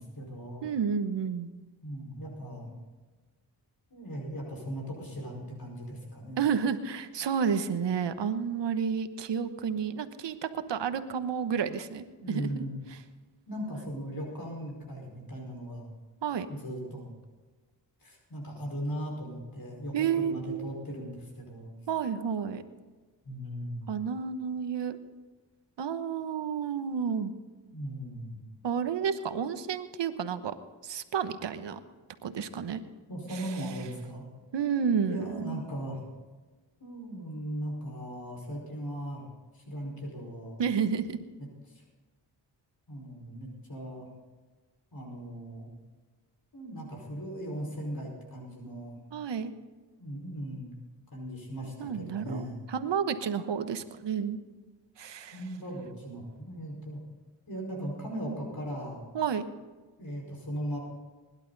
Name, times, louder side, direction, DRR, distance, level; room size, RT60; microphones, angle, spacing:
voice 1, 0.0-0.7 1.8-2.7 3.9-6.4 12.2-12.8 13.5-15.8 16.5-17.1 18.0-21.7 23.2-23.9 27.7-28.4 33.1-34.3 35.0-36.0 36.8-39.2 39.5-40.6 41.7-41.8 42.9-44.1 44.9-45.7 46.5-49.0 50.0-50.8 51.1-52.6 55.3-57.0 57.5-59.1 60.0-60.8, equal, 50° left, -1 dB, 5.1 m, -38 dB
voice 2, 0.6-1.5 6.4-12.5 16.2-16.5 19.9-20.8 21.9-22.6 23.9-25.0 25.8-27.3 28.6-30.5 30.8-31.8 32.2-32.8 33.3-33.4 34.5-35.6 40.6-41.2 49.1-49.5 51.6-54.4 55.0-55.4 59.1-59.4, right 7 dB, 75° right, 10 dB, 1.2 m, -31 dB
20.5 x 11.5 x 4.1 m, 1.3 s
cardioid pair, 55°, 44 cm